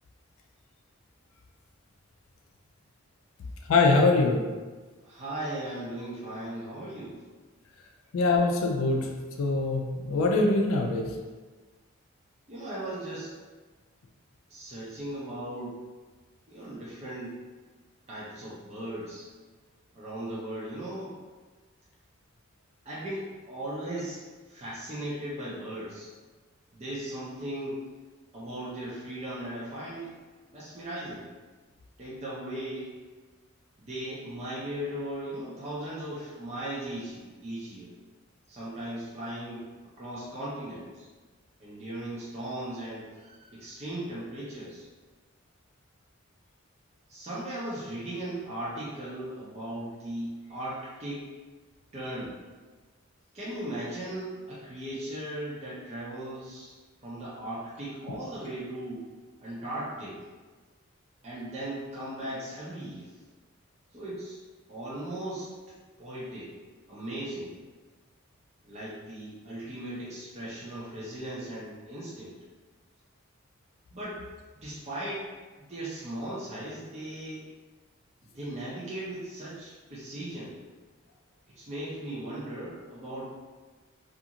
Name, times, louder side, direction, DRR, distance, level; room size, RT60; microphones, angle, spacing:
voice 1, 3.7-4.4 8.1-9.1 9.4-11.1, left 3 dB, 85° left, 1 dB, 0.4 m, -23 dB
voice 2, 5.0-7.2 12.5-13.3 14.5-15.8 16.5-17.4 18.1-19.3 19.9-21.1 22.8-24.2 24.5-26.1 26.7-27.9 28.3-30.1 30.5-31.3 32.0-32.9 33.8-37.9 38.5-39.6 40.0-41.1 41.6-44.9 47.1-51.2 51.9-52.4 53.3-56.7 57.0-59.0 59.4-60.2 61.2-63.2 63.9-64.4 64.7-65.5 66.0-66.5 66.9-67.5 68.6-72.3 73.9-74.2 74.6-75.3 75.6-77.4 78.3-80.6 81.6-83.3, right 1 dB, 30° right, -8 dB, 0.5 m, -37 dB
2.4 x 2.4 x 2.8 m, 1.3 s
head